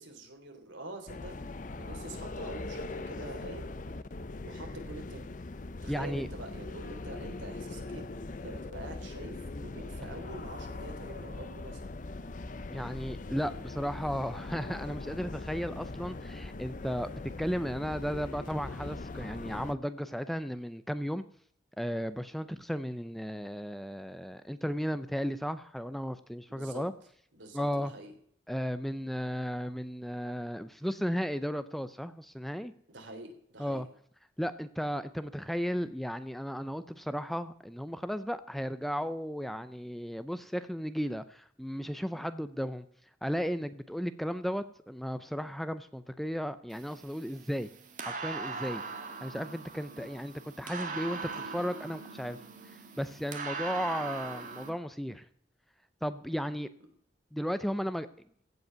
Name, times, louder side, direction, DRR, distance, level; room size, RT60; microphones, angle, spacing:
voice 1, 0.0-1.4 1.7-3.8 4.4-5.2 5.8-8.0 8.4-11.9 26.5-26.8 27.3-28.1 32.9-33.8 49.9-50.2, right 2 dB, 80° right, 4 dB, 3.2 m, -45 dB
sound 1, 1.1-19.7, left 2 dB, 45° left, 0.6 m, -41 dB
voice 2, 5.9-6.3 12.7-17.1 17.4-21.2 21.8-26.9 27.5-27.9 28.5-32.7 33.6-33.9 34.4-42.8 43.2-47.7 48.1-48.8 49.2-52.4 53.0-55.3 56.0-56.7 57.3-58.1, equal, ahead, 12 dB, 0.5 m, -35 dB
sound 2, 46.7-54.7, right 4 dB, 45° right, 1.7 m, -41 dB
16.0 x 5.4 x 9.2 m, 0.65 s
head